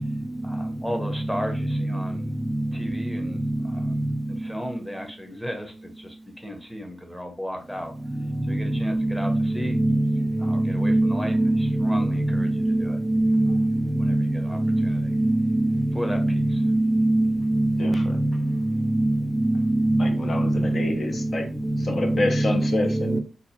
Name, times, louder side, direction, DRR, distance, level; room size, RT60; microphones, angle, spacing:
voice 1, 0.4-2.3 2.7-4.0 4.3-7.9 8.4-9.8 10.4-13.0 14.0-15.1 15.9-16.6, equal, 10° left, 0.9 m, -35 dB
voice 2, 8.9-9.5 9.8-10.0 10.5-12.0 12.6-12.8 13.1-13.7 14.0-14.2 14.6-14.8 15.2-15.4 16.1-16.3 16.6-18.0 18.9-19.2 19.4-20.1 23.1-23.2, right 1 dB, 10° right, 0.4 m, -21 dB
voice 3, 17.8-18.1 20.0-21.5 21.8-23.2, left 2 dB, 60° left, 0.7 m, -28 dB
4.0 x 2.4 x 2.7 m
cardioid pair, 75°, 0 cm